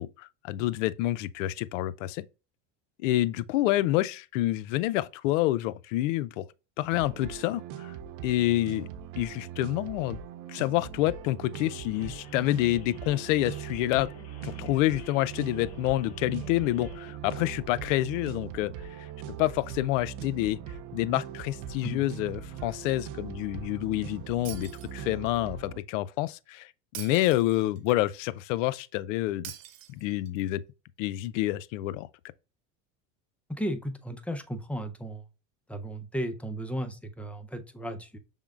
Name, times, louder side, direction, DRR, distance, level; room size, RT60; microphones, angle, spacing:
voice 1, 0.0-2.2 3.0-6.4 6.8-7.9 8.2-8.9 9.2-10.2 10.5-14.1 14.4-18.7 19.0-19.1 19.4-20.6 20.9-29.5 29.9-30.6 31.0-32.1, left 16 dB, 80° left, 0.5 m, -28 dB
sound 1, 6.9-25.8, right 9 dB, 55° right, 0.6 m, -41 dB
sound 2, 11.9-17.1, left 8 dB, 40° left, 0.9 m, -52 dB
Shatter, 24.4-25.4 26.9-28.0 29.4-30.4, right 12 dB, 85° right, 0.9 m, -44 dB
voice 2, 33.5-35.2 35.7-38.2, right 1 dB, 5° left, 0.5 m, -35 dB
6.0 x 3.6 x 2.3 m
supercardioid pair, 115°, 37 cm